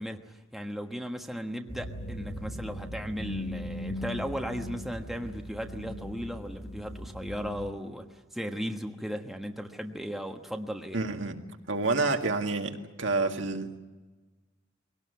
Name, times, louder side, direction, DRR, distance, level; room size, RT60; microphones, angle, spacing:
voice 1, 0.0-11.0, equal, ahead, 3 dB, 1.3 m, -36 dB
sound 1, 1.7-7.7, equal, 35° left, 2.9 m, -39 dB
voice 2, 10.9-11.4 11.7-13.8, right 3 dB, 65° right, 4 dB, 1.9 m, -28 dB
23.0 x 18.0 x 9.4 m, 1.2 s
head